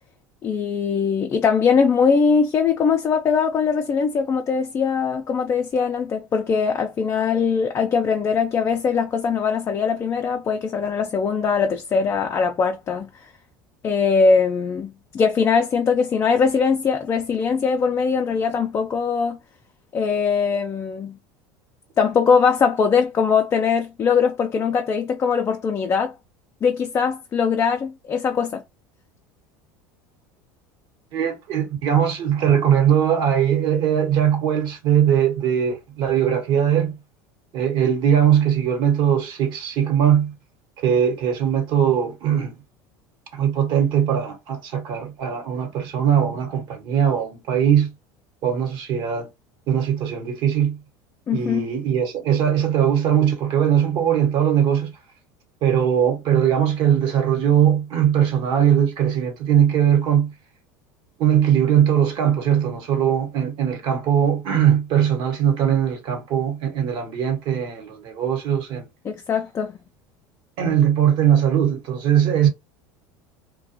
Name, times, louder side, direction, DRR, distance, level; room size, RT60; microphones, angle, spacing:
voice 1, 0.4-13.1 13.8-19.4 19.9-21.2 22.0-26.1 26.6-28.6 51.3-51.7 69.0-69.8, left 5 dB, 30° left, 0.4 m, -21 dB
voice 2, 31.1-36.9 37.5-40.3 40.8-42.6 43.3-47.9 48.4-49.3 49.7-50.8 51.3-54.9 55.6-60.3 61.2-68.9 70.6-72.5, right 9 dB, 60° right, 1.2 m, -20 dB
2.4 x 2.2 x 2.8 m
supercardioid pair, 100°, 9 cm